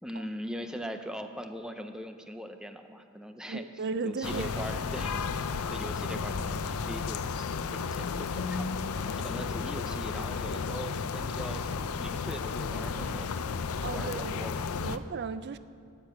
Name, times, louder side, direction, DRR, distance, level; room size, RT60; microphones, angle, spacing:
voice 1, 0.0-3.6 4.0-8.7 9.0-13.3 13.9-15.0, equal, 5° right, 6 dB, 0.6 m, -41 dB
voice 2, 3.5-4.5 5.0-5.2 13.8-14.5 14.8-15.6, right 4 dB, 50° right, 13 dB, 0.4 m, -36 dB
sound 1, 4.2-15.0, left 5 dB, 85° left, 0.5 m, -33 dB
10.5 x 10.5 x 7.4 m, 2.3 s
head